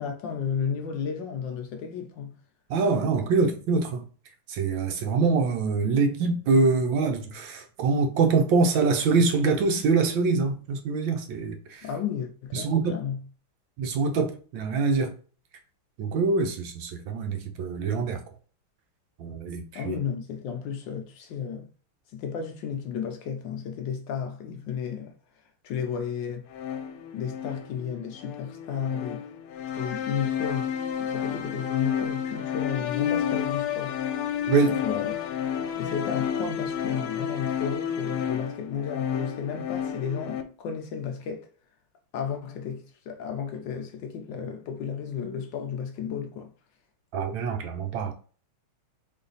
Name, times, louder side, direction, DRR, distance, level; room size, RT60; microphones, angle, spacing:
voice 1, 0.0-2.3 11.8-13.2 19.7-21.7 22.1-25.1 25.6-26.5 27.1-29.3 29.7-30.7 31.0-34.0 34.7-35.1 35.8-41.5 42.1-46.5, left 7 dB, 70° left, 1.1 m, -33 dB
voice 2, 2.7-4.1 4.5-11.9 12.5-12.9 13.8-15.1 16.0-18.2 19.2-20.0 34.5-34.8 47.1-48.1, right 4 dB, 70° right, 1.3 m, -24 dB
sound 1, 26.5-40.4, left 9 dB, 90° left, 1.6 m, -31 dB
4.1 x 3.2 x 3.9 m
omnidirectional pair, 2.4 m